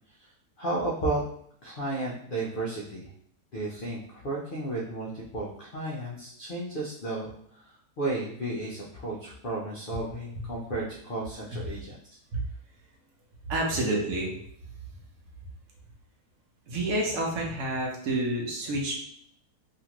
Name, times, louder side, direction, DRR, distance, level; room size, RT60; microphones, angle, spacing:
voice 1, 0.6-1.2 1.6-3.1 3.5-12.0, right 2 dB, 70° left, -4 dB, 0.5 m, -33 dB
voice 2, 13.5-14.3 16.7-18.9, right 1 dB, 65° right, -1 dB, 1.0 m, -28 dB
2.8 x 2.4 x 2.9 m, 0.64 s
omnidirectional pair, 1.7 m